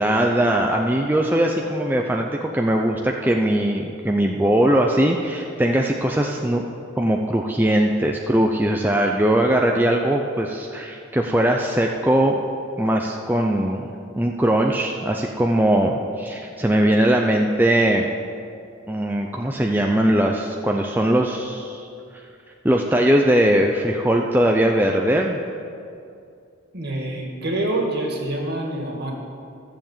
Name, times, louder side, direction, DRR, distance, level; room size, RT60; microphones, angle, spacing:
voice 1, 0.0-6.7 7.0-12.4 12.8-18.1 18.9-21.9 22.1-22.2 22.6-25.4, right 1 dB, 10° right, 1 dB, 0.5 m, -20 dB
voice 2, 26.7-29.1, right 1 dB, 50° right, 0 dB, 2.0 m, -26 dB
14.0 x 7.2 x 7.3 m, 2.5 s
head